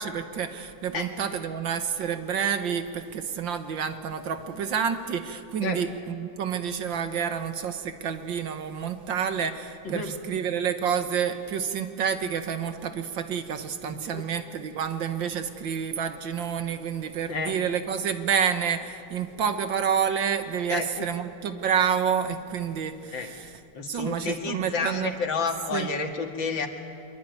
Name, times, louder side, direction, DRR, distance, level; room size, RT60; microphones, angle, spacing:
voice 1, 0.0-23.5 23.9-25.1 25.7-25.9, right 7 dB, 75° right, 8 dB, 2.0 m, -29 dB
voice 2, 13.9-14.3 17.3-17.6 20.7-21.2 23.1-23.3 23.7-26.7, left 4 dB, 80° left, 4 dB, 2.7 m, -31 dB
24.5 x 22.5 x 9.4 m, 2.3 s
omnidirectional pair, 2.1 m